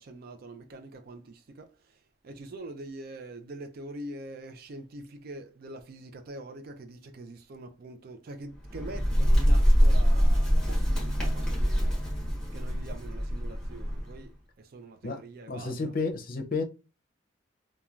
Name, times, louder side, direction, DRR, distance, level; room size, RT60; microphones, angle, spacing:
voice 1, 0.0-12.1 12.5-16.0, right 2 dB, 50° right, 0.4 m, -44 dB
Bird, 8.5-14.2, equal, 5° left, 1.1 m, -24 dB
voice 2, 15.5-16.6, left 3 dB, 45° left, 0.6 m, -31 dB
3.0 x 2.2 x 2.4 m
head